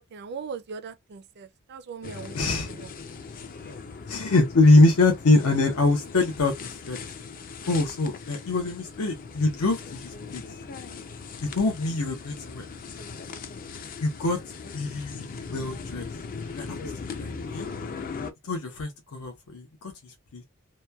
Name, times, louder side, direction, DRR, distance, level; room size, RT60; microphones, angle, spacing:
voice 1, 0.0-2.9, right 5 dB, 50° right, 0.4 m, -40 dB
sound 1, 2.0-18.3, left 4 dB, 40° left, 0.4 m, -39 dB
voice 2, 2.3-2.7 4.1-7.1 7.7-10.4 11.4-12.6 14.0-14.4 14.7-16.1 16.5-16.8 17.0-17.7 18.4-20.4, left 2 dB, 80° left, 0.7 m, -24 dB
2.9 x 2.1 x 2.2 m
head